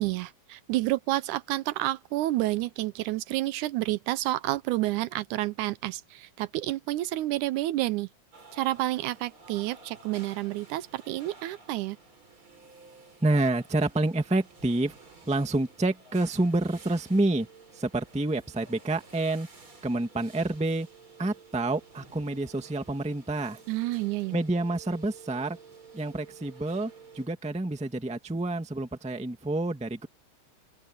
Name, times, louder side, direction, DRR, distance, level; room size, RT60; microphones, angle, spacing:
voice 1, 0.0-8.1 8.5-12.0 23.7-24.4, right 17 dB, 80° right, 2.0 m, -29 dB
sound 1, 8.3-27.3, right 4 dB, 40° right, 5.9 m, -52 dB
voice 2, 13.2-15.0 15.3-17.5 17.7-19.5 19.8-20.9 21.2-23.6 24.3-25.6 25.9-30.1, right 2 dB, 5° right, 1.0 m, -28 dB
open air
omnidirectional pair, 3.6 m